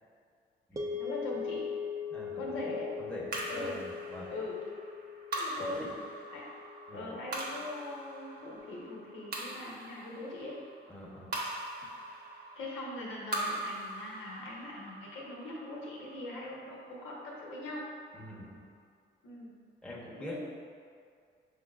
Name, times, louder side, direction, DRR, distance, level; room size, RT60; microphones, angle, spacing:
sound 1, 0.8-9.0, left 6 dB, 15° right, 0.5 m, -41 dB
voice 1, 1.0-1.6 2.3-2.9 3.5-3.8 4.3-4.6 5.3-5.8 6.3-6.4 6.9-10.5 12.6-17.8 19.2-19.5 20.1-20.4, left 2 dB, 90° left, -5 dB, 1.0 m, -41 dB
voice 2, 2.1-2.6 3.0-4.3 5.6-5.9 6.9-7.1 10.9-11.4 18.1-18.6 19.8-20.4, left 1 dB, 5° left, -5 dB, 0.9 m, -45 dB
sound 2, 3.3-17.8, right 1 dB, 55° right, 0.9 m, -42 dB
6.0 x 3.4 x 2.3 m, 2.2 s
cardioid pair, 90°, 20 cm